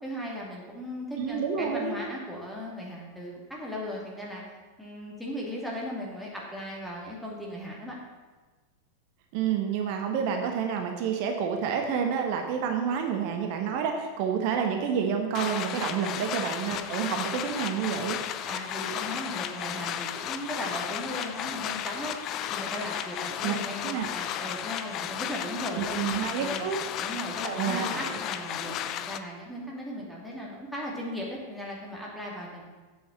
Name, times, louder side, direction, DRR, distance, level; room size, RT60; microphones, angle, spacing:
voice 1, 0.0-4.4 4.8-8.0 15.7-15.9 18.4-22.2 22.5-26.0 26.4-26.7 27.0-32.6, equal, ahead, -4 dB, 2.6 m, -37 dB
voice 2, 1.2-1.9 9.3-18.2 23.4-23.5 23.8-24.1 25.7-26.8 27.4-28.1, right 7 dB, 45° right, 4 dB, 1.3 m, -29 dB
sound 1, 15.3-29.2, left 10 dB, 35° left, 0.6 m, -34 dB
8.7 x 7.3 x 7.3 m, 1.3 s
figure-of-eight pair, 90°, 0 cm